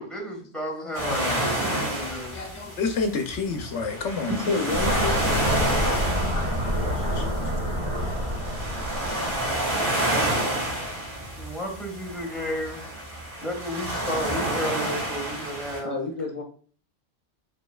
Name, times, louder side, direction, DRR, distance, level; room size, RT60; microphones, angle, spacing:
voice 1, 0.0-2.4 6.6-7.7 11.3-12.9 13.4-16.0, equal, ahead, -1 dB, 1.4 m, -33 dB
sound 1, 0.9-15.8, right 1 dB, 55° right, 2.7 m, -29 dB
voice 2, 1.0-1.4 1.7-4.7 6.3-6.7 7.1-7.5 8.2-8.4 8.9-9.4, left 4 dB, 75° left, 5 dB, 1.0 m, -32 dB
voice 3, 4.3-5.8 15.8-16.4, left 2 dB, 35° left, 0 dB, 1.1 m, -29 dB
sound 2, 4.7-9.7, equal, 25° right, 1.3 m, -28 dB
5.1 x 4.4 x 2.3 m, 0.43 s
omnidirectional pair, 1.2 m